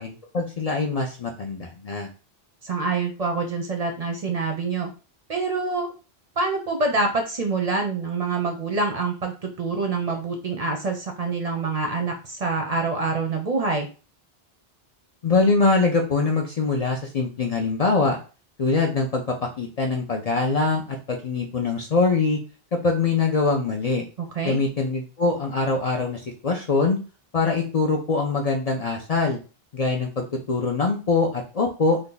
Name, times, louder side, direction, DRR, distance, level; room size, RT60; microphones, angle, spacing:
voice 1, 0.0-2.1 15.2-18.2 18.6-22.4 22.7-24.1 24.4-27.0 27.3-29.4 29.7-32.0, left 3 dB, 50° left, 1 dB, 0.5 m, -23 dB
voice 2, 2.6-4.9 5.3-5.9 6.4-13.9 24.2-24.6, right 3 dB, 45° right, 3 dB, 0.6 m, -26 dB
2.6 x 2.5 x 3.7 m, 0.34 s
omnidirectional pair, 1.0 m